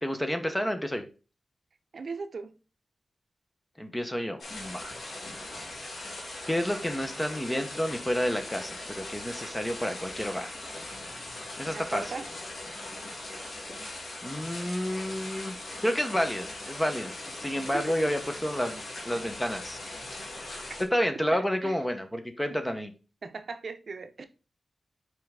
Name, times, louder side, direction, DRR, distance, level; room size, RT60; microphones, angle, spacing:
voice 1, 0.0-1.1 3.8-4.9 6.5-10.6 11.6-12.0 14.2-15.5 15.8-17.1 17.4-19.8 20.9-22.9, equal, 10° left, 1.0 m, -30 dB
voice 2, 1.9-2.5 11.7-12.3 17.7-17.9 21.3-21.8 23.2-24.2, right 4 dB, 65° right, 0.6 m, -38 dB
sound 1, 4.4-20.8, left 2 dB, 80° left, 2.4 m, -40 dB
5.7 x 4.6 x 3.6 m
wide cardioid pair, 120°, 0 cm